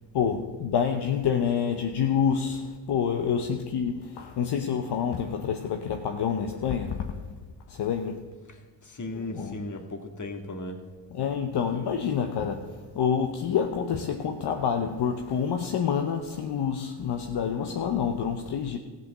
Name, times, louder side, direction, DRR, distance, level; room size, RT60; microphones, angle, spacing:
voice 1, 0.1-7.3 7.7-8.2 9.1-9.7 11.1-18.8, left 7 dB, 65° left, 1.0 m, -28 dB
voice 2, 8.8-10.8, left 1 dB, 45° left, 2.0 m, -36 dB
15.0 x 5.8 x 7.3 m
supercardioid pair, 55°, 43 cm